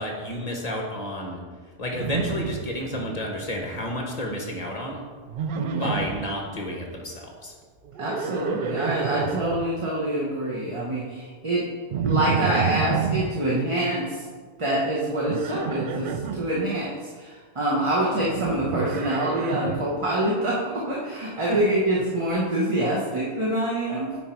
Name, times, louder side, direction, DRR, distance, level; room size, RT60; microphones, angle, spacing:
voice 1, 0.0-1.4 1.8-5.0 5.6-7.5 21.5-21.6, left 1 dB, 30° left, 0 dB, 1.3 m, -31 dB
Livestock farm animals working animals, 1.9-3.2 3.5-4.0 5.3-6.3 7.9-9.6 11.9-13.3 15.3-16.4 18.2-19.9, right 7 dB, 60° right, 0.5 m, -29 dB
voice 2, 5.5-6.0 8.0-11.7 12.0-14.2 14.6-24.2, right 1 dB, 25° right, -5 dB, 1.0 m, -26 dB
9.2 x 4.3 x 4.5 m, 1.5 s
omnidirectional pair, 1.3 m